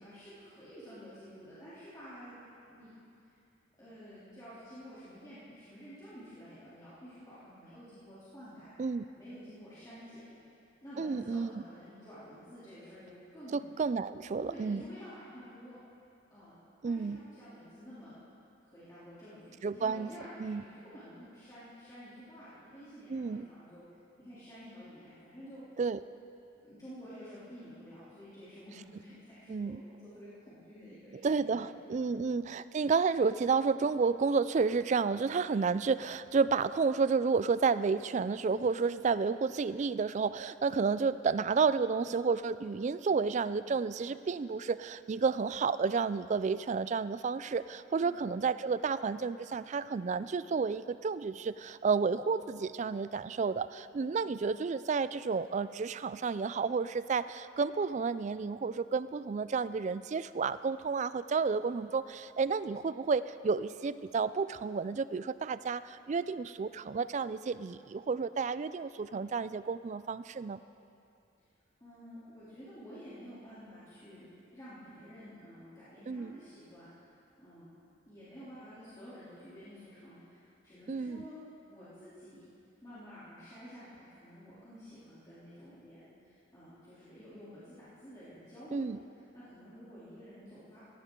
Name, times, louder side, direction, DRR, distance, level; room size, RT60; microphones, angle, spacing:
voice 1, 0.0-2.4 2.7-3.0 3.8-8.9 9.2-10.2 10.8-13.6 14.4-15.8 16.3-16.5 16.8-18.2 18.6-23.8 24.2-25.6 26.6-32.1 47.9-48.2 54.1-54.6 71.8-74.3 74.5-76.9 77.4-77.6 78.0-81.4 81.7-82.4 82.8-88.8 89.3-90.8, equal, 20° left, -13 dB, 3.0 m, -50 dB
voice 2, 11.0-11.5 13.5-14.8 16.8-17.2 19.6-20.1 20.4-20.6 23.1-23.5 25.8-26.0 29.5-29.8 31.2-70.6 76.1-76.4 80.9-81.3 88.7-89.0, right 5 dB, 35° right, 15 dB, 0.3 m, -31 dB
16.5 x 15.5 x 3.8 m, 2.6 s
head